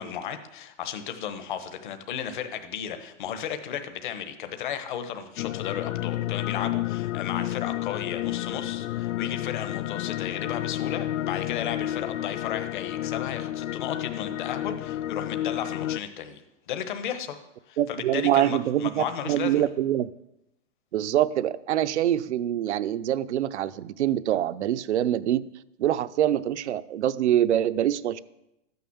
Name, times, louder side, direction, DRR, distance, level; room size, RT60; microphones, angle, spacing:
voice 1, 0.0-17.4 17.7-19.7, left 9 dB, 40° left, 8 dB, 1.2 m, -34 dB
sound 1, 5.4-16.0, left 14 dB, 90° left, 0.5 m, -31 dB
Wind instrument woodwind instrument, 8.5-13.4, left 10 dB, 55° left, 2.4 m, -47 dB
voice 2, 17.8-20.1 20.9-25.4 25.8-28.2, right 11 dB, 60° right, 14 dB, 0.7 m, -25 dB
13.5 x 9.4 x 7.1 m, 0.87 s
hypercardioid pair, 180°, 39 cm